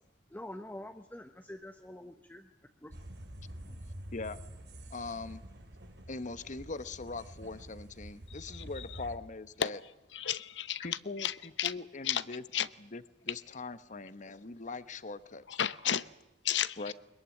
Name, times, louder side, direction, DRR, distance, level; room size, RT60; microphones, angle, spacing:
voice 1, 0.3-2.5 2.8-2.9, left 1 dB, 10° left, 1.0 m, -46 dB
sound 1, 2.9-9.2, right 1 dB, 65° right, 3.3 m, -47 dB
voice 2, 4.9-5.4 6.1-9.8 10.8-15.7 16.8-16.9, left 3 dB, 45° left, 1.0 m, -41 dB
voice 3, 10.1-10.8 11.2-11.3 11.6-11.7 12.1-12.2 12.5-12.7 15.6-16.0 16.4-16.9, left 9 dB, 75° left, 0.9 m, -31 dB
22.5 x 21.5 x 10.0 m
head